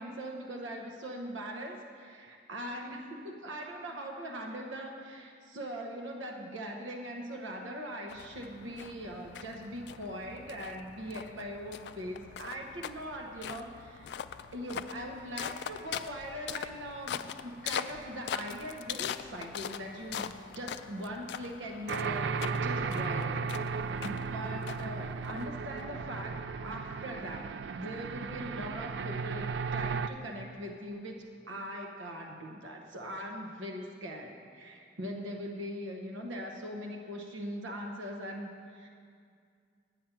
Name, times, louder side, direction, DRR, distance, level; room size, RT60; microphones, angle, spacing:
voice 1, 0.0-14.1 14.5-22.3 22.6-38.9, equal, 85° right, 1 dB, 0.9 m, -41 dB
sound 1, 8.1-25.8, left 8 dB, 60° left, 0.3 m, -42 dB
sound 2, 21.9-30.1, right 5 dB, 65° right, 0.3 m, -35 dB
8.8 x 8.3 x 5.8 m, 2.3 s
head